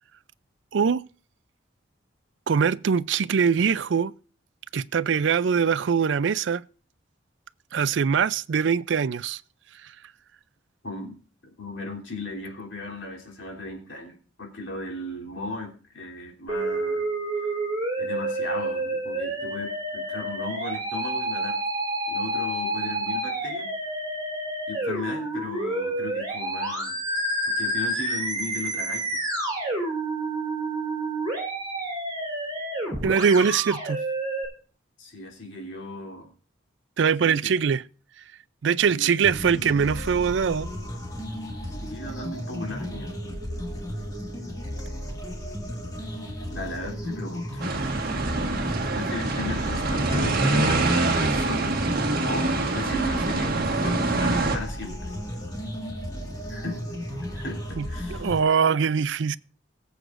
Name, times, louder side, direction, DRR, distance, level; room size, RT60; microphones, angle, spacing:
voice 1, 0.7-1.0 2.5-4.1 4.7-6.6 7.7-9.4 33.0-34.0 37.0-37.8 38.6-40.7 57.8-59.4, right 6 dB, 70° right, 0.4 m, -22 dB
voice 2, 10.8-11.1 11.6-17.1 18.0-21.6 22.1-23.7 24.7-27.1 27.6-29.1 35.0-36.3 37.2-37.5 38.9-39.2 41.7-43.2 46.5-47.6 48.9-51.8 52.2-55.1 56.5-56.8 57.2-58.3, left 2 dB, 90° left, 3.2 m, -36 dB
Musical instrument, 16.5-34.5, right 1 dB, 25° right, 4.1 m, -29 dB
sound 1, 39.2-58.4, equal, 20° left, 1.9 m, -34 dB
sound 2, 47.6-54.6, right 2 dB, 55° right, 1.6 m, -25 dB
21.0 x 7.9 x 2.5 m
head